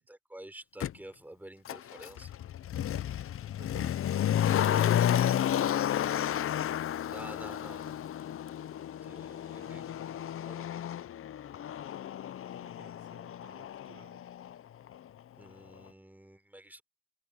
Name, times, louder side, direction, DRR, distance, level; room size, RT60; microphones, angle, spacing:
voice 1, 0.0-2.4 4.7-5.2 5.8-6.3 7.1-8.0 9.0-9.8 10.5-10.7 15.4-16.8, right 1 dB, 5° right, 4.0 m, -49 dB
Motor vehicle (road), 0.8-0.9 1.7-14.6 14.9-15.0, left 10 dB, 45° left, 0.6 m, -32 dB
voice 2, 3.6-4.0 4.5-5.3 9.5-10.3 12.4-14.2, right 7 dB, 50° right, 5.5 m, -56 dB
cardioid pair, 90°, 30 cm